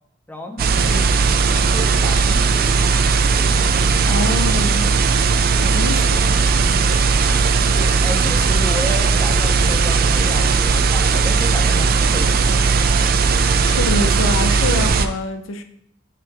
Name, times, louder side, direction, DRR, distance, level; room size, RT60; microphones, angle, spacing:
voice 1, 0.3-3.5 7.0-13.4, left 1 dB, 10° left, 3 dB, 0.6 m, -33 dB
sound 1, 0.6-15.1, right 4 dB, 50° right, 0.4 m, -17 dB
voice 2, 4.1-4.9 5.6-6.3 13.7-15.6, left 2 dB, 80° left, 8 dB, 0.6 m, -25 dB
5.0 x 4.6 x 4.6 m, 0.72 s
head